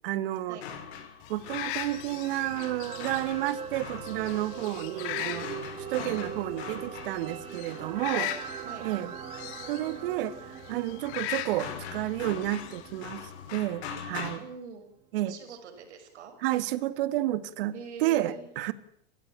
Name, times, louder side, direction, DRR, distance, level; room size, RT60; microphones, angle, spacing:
voice 1, 0.0-0.6 1.3-8.3 8.8-9.2 9.7-14.4 15.1-15.6 16.4-17.8 18.0-18.7, right 14 dB, 55° right, 1.8 m, -31 dB
sound 1, 0.6-8.3 11.1-14.4, left 7 dB, 70° left, 6.4 m, -42 dB
sound 2, 1.2-13.5, left 15 dB, 35° left, 1.9 m, -40 dB
sound 3, 1.4-13.7 14.1-14.2, right 9 dB, 15° right, 1.2 m, -42 dB
voice 2, 8.1-8.9 14.4-14.9 15.2-16.3 17.7-18.5, right 6 dB, 80° right, 5.8 m, -44 dB
29.0 x 16.0 x 8.8 m
supercardioid pair, 150°, 34 cm